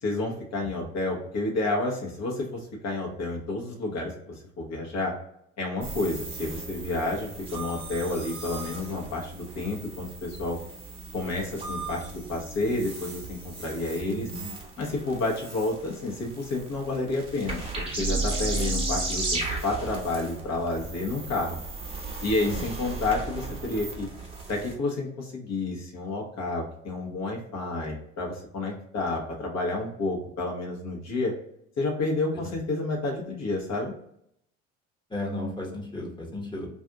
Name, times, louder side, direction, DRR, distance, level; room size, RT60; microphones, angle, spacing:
voice 1, 0.0-5.1 5.6-10.6 11.1-14.3 14.8-21.6 22.2-24.1 24.5-31.3 31.8-33.9, left 2 dB, 45° left, 0 dB, 1.0 m, -30 dB
sound 1, 5.8-24.7, right 3 dB, 15° right, 0.8 m, -35 dB
voice 2, 14.0-14.5 22.4-22.6 32.3-32.5 35.1-36.7, left 1 dB, 10° left, -1 dB, 1.0 m, -34 dB
2.6 x 2.5 x 3.4 m, 0.73 s
hypercardioid pair, 65°, 39 cm